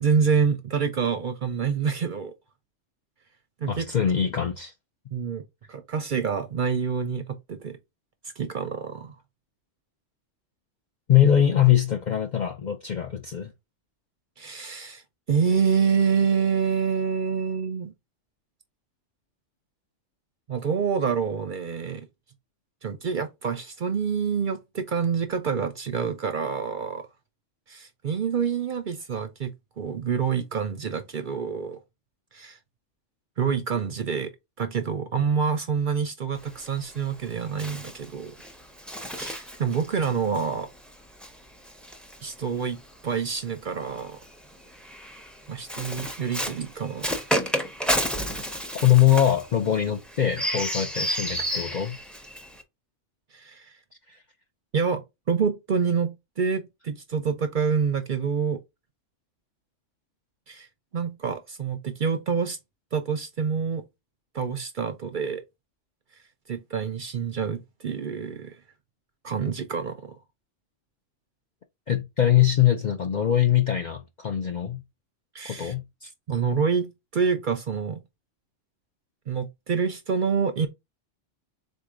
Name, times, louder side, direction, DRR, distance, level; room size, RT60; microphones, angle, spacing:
voice 1, 0.0-2.3 3.6-3.9 5.1-5.4 5.7-7.8 8.4-9.1 14.4-15.0 15.3-17.9 20.5-22.1 22.8-27.1 27.7-31.8 32.3-32.6 33.4-34.3 34.6-38.3 39.2-40.7 42.2-44.2 45.5-47.1 53.3-53.8 54.7-58.6 60.5-60.7 60.9-62.6 62.9-63.8 64.3-65.4 66.5-68.6 69.2-70.2 75.3-75.7 76.3-78.0 79.3-80.7, right 6 dB, 55° right, 0.6 m, -27 dB
voice 2, 3.7-4.7 11.1-13.5 48.8-52.0 54.1-54.2 71.9-74.8 75.5-76.1, left 10 dB, 60° left, 0.5 m, -22 dB
Bird, 36.3-42.9 43.8-52.6, equal, ahead, 0.4 m, -32 dB
3.9 x 2.7 x 4.7 m
omnidirectional pair, 1.3 m